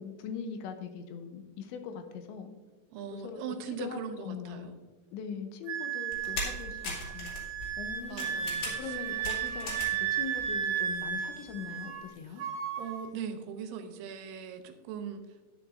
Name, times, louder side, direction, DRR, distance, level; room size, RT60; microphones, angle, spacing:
voice 1, 0.0-2.5 3.1-3.4 3.8-4.7 5.1-7.3 7.8-12.4, left 6 dB, 90° left, 6 dB, 3.1 m, -41 dB
voice 2, 2.9-4.8 8.1-9.0 12.2-12.4 12.8-15.3, right 7 dB, 85° right, 7 dB, 3.2 m, -40 dB
Wind instrument woodwind instrument, 5.7-12.1 12.4-13.0, right 9 dB, 50° right, 2.5 m, -34 dB
sound 1, 6.1-10.1 10.4-11.1 11.5-11.6, left 2 dB, 60° left, 4.2 m, -39 dB
11.0 x 10.0 x 2.6 m, 1.3 s
omnidirectional pair, 5.2 m